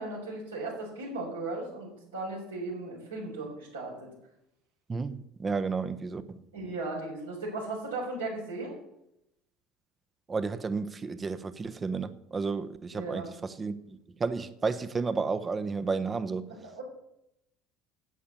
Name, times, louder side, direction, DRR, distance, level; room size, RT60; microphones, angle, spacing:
voice 1, 0.0-4.1 6.5-8.7 12.9-13.2 16.6-16.8, right 2 dB, 85° right, 4.6 m, -36 dB
voice 2, 4.9-6.4 10.3-16.5, right 4 dB, 25° right, 1.1 m, -32 dB
11.0 x 8.3 x 6.9 m
figure-of-eight pair, 65°, 0 cm